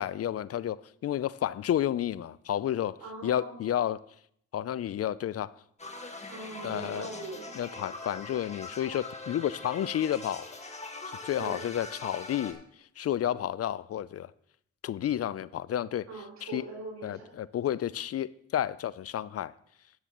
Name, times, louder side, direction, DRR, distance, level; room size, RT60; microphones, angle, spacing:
voice 1, 0.0-3.0 3.2-4.0 4.5-5.5 6.6-7.1 7.6-10.5 11.1-12.6 13.0-14.3 14.8-16.1 16.5-16.6 17.0-19.5, left 11 dB, 55° left, 0.4 m, -31 dB
voice 2, 3.0-3.6 6.3-7.5 11.4-11.6 16.1-17.3, right 3 dB, 65° right, 4.8 m, -41 dB
sound 1, 5.8-12.5, left 3 dB, 20° left, 1.6 m, -42 dB
13.5 x 9.8 x 3.0 m
cardioid pair, 65°, 30 cm